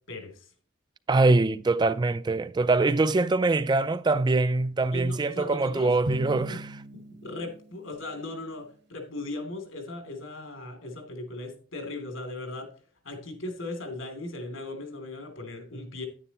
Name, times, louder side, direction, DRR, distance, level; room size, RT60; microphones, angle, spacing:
voice 1, 0.1-0.5 4.9-5.9 6.5-6.6 6.9-12.7 13.0-16.1, left 2 dB, 80° left, 2.9 m, -38 dB
voice 2, 1.1-6.8, right 3 dB, 20° right, 0.3 m, -23 dB
Drum, 6.1-8.2, equal, 55° right, 1.1 m, -36 dB
10.0 x 9.8 x 3.0 m
head